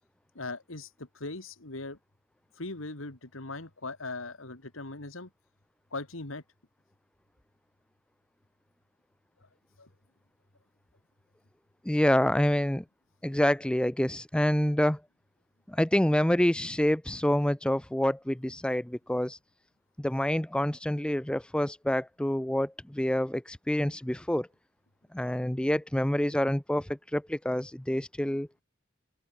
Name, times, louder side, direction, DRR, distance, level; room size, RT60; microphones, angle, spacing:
voice 1, 0.3-2.0 2.6-5.3 5.9-6.4 9.4-9.5 9.8-9.9, left 2 dB, 90° left, 2.8 m, -39 dB
voice 2, 11.8-12.8 13.2-15.0 15.7-19.4 20.0-24.5 25.1-28.5, left 1 dB, 5° left, 0.5 m, -27 dB
open air
head